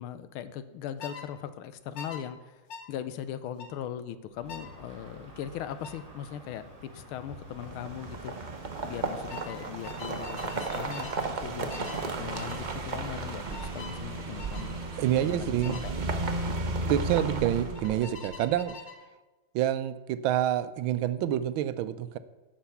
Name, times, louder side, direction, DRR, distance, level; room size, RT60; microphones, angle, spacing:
voice 1, 0.0-2.6 2.9-8.3 8.8-11.9 12.2-14.8 15.2-15.9, left 10 dB, 90° left, 12 dB, 1.6 m, -39 dB
sound 1, 1.0-1.3 2.0-2.2 2.7-2.9 3.6-3.8 4.5-4.7 5.8-6.0 7.5-7.7 8.0-8.4 9.3-11.2 11.7-12.1 12.3-12.6 13.5-14.0 14.4-14.7 15.6-15.9 17.7-19.0, left 5 dB, 65° left, 1.8 m, -44 dB
Crow, 4.3-15.8, right 1 dB, 25° right, 4.2 m, -48 dB
sound 2, 7.5-18.3, right 3 dB, 55° right, 0.5 m, -34 dB
voice 2, 15.0-15.8 16.9-18.8 19.5-22.2, right 11 dB, 80° right, 13 dB, 1.3 m, -27 dB
11.5 x 6.0 x 6.9 m, 1.2 s
omnidirectional pair, 2.3 m